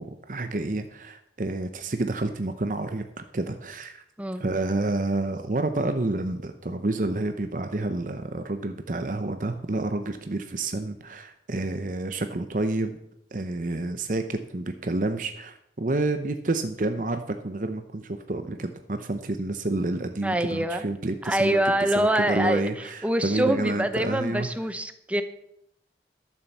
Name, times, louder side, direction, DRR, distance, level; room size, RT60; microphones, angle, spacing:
voice 1, 0.0-4.0 4.4-13.0 13.3-24.5, right 2 dB, 45° right, 8 dB, 0.7 m, -29 dB
voice 2, 20.2-20.8 21.2-25.2, right 1 dB, 5° right, 9 dB, 0.8 m, -25 dB
12.5 x 7.1 x 7.2 m, 0.79 s
head